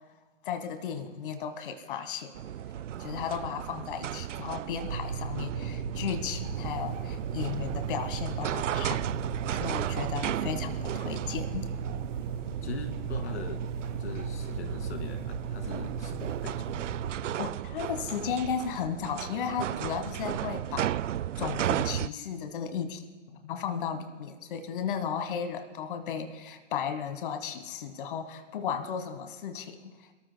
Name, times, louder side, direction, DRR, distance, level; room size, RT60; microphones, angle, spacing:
voice 1, 0.4-2.3 3.0-9.0 9.5-11.7 17.4-21.0 21.4-23.0 23.4-29.9, left 7 dB, 45° left, 8 dB, 1.3 m, -35 dB
sound 1, 2.3-22.1, right 11 dB, 80° right, 0.6 m, -35 dB
sound 2, 4.8-17.2, right 5 dB, 40° right, 3.4 m, -36 dB
voice 2, 12.6-13.6 14.0-16.7 23.3-23.4, left 5 dB, 65° left, 5 dB, 2.3 m, -41 dB
28.0 x 13.0 x 2.2 m, 1.4 s
hypercardioid pair, 155°, 36 cm